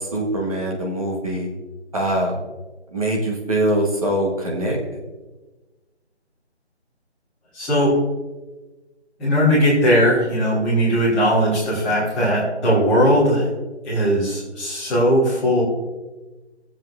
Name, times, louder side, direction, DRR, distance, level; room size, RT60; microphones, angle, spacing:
voice 1, 0.0-1.5 1.9-2.3 2.9-4.8, right 1 dB, 30° right, -1 dB, 1.5 m, -23 dB
voice 2, 7.5-7.9 9.2-13.5 13.8-15.6, equal, ahead, -15 dB, 1.1 m, -18 dB
17.0 x 7.6 x 2.6 m, 1.2 s
figure-of-eight pair, 170°, 34 cm